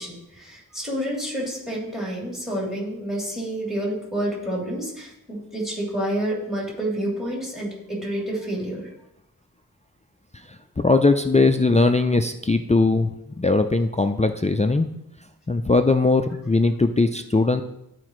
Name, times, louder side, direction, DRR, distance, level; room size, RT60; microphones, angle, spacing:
voice 1, 0.0-8.9, right 1 dB, ahead, -4 dB, 3.0 m, -29 dB
voice 2, 10.8-14.9 15.5-17.6, left 3 dB, 20° left, 7 dB, 0.4 m, -20 dB
13.0 x 4.9 x 3.1 m, 0.84 s
wide cardioid pair, 65°, 37 cm